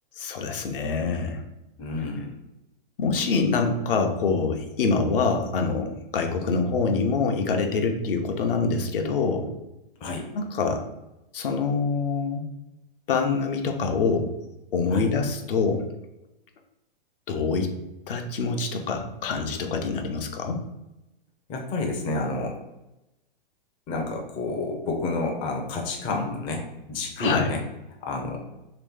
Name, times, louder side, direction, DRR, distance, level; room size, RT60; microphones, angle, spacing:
voice 1, 0.2-1.4 3.0-9.5 10.3-10.8 11.3-12.5 13.1-14.3 14.7-15.9 17.3-17.7 18.1-20.6 27.2-27.5, left 4 dB, 65° left, 4 dB, 0.7 m, -25 dB
voice 2, 1.8-2.4 10.0-10.3 14.9-15.0 21.5-22.6 23.9-27.6 28.0-28.4, left 3 dB, 20° left, 1 dB, 0.4 m, -29 dB
3.2 x 3.0 x 3.5 m, 0.93 s
hypercardioid pair, 130°, 29 cm